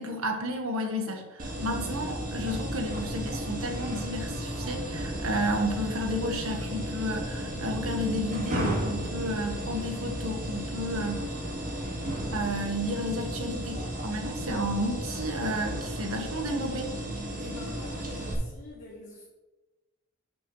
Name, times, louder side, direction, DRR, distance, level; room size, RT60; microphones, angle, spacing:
voice 1, 0.0-11.3 12.3-16.9, equal, 75° right, 3 dB, 1.5 m, -32 dB
sound 1, 1.4-18.3, equal, 40° right, 2.1 m, -34 dB
sound 2, 1.7-15.8, equal, 20° right, 0.8 m, -43 dB
voice 2, 17.4-19.2, left 2 dB, 40° left, -3 dB, 1.4 m, -45 dB
12.5 x 6.1 x 3.3 m, 1.1 s
head